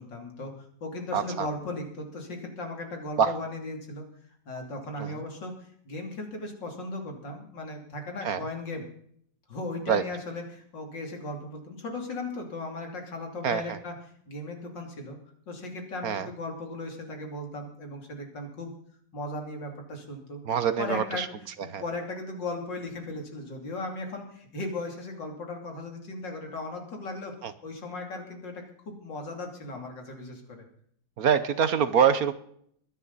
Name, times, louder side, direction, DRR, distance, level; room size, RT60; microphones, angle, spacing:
voice 1, 0.0-4.1 4.5-8.9 9.5-14.0 14.3-15.2 15.5-18.7 19.1-20.4 20.8-21.3 21.6-27.3 27.6-30.7, left 2 dB, 80° left, 2 dB, 3.6 m, -37 dB
voice 2, 1.1-1.5 3.2-3.4 5.0-5.1 8.2-8.4 9.9-10.0 13.4-13.8 16.0-16.3 20.5-21.3 21.7-21.8 27.4-27.5 31.2-32.3, right 7 dB, 60° right, 13 dB, 1.2 m, -25 dB
22.0 x 10.5 x 4.1 m, 0.66 s
omnidirectional pair, 1.9 m